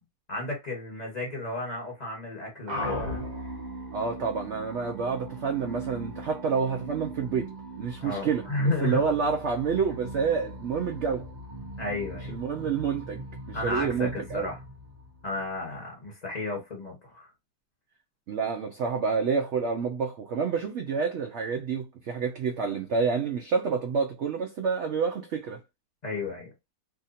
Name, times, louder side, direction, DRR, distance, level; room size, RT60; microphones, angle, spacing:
voice 1, 0.3-3.2 8.0-9.0 11.8-12.3 13.5-14.6 15.2-17.3 26.0-26.5, left 2 dB, 25° left, 1.6 m, -32 dB
sound 1, 2.7-15.5, equal, 35° right, 0.8 m, -39 dB
voice 2, 3.9-7.5 7.8-11.3 12.3-14.5 18.3-25.6, right 5 dB, 65° right, 0.7 m, -28 dB
2.8 x 2.5 x 4.1 m
omnidirectional pair, 1.7 m